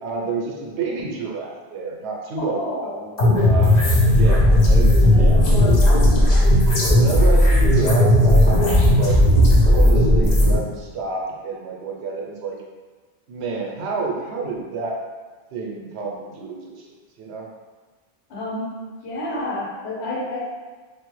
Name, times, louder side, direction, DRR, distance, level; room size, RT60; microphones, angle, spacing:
voice 1, 0.0-2.9 3.4-5.8 6.9-9.2 9.7-12.6 13.3-15.0 15.5-16.8 17.2-17.5, right 4 dB, 80° right, -1 dB, 0.9 m, -29 dB
voice 2, 2.4-3.2 3.8-4.1 5.1-6.1 18.3-18.7 19.0-20.4, left 1 dB, 90° left, -5 dB, 1.1 m, -30 dB
sound 1, 3.2-10.5, left 1 dB, 50° left, 0.6 m, -15 dB
3.1 x 2.0 x 3.1 m, 1.4 s
omnidirectional pair, 1.1 m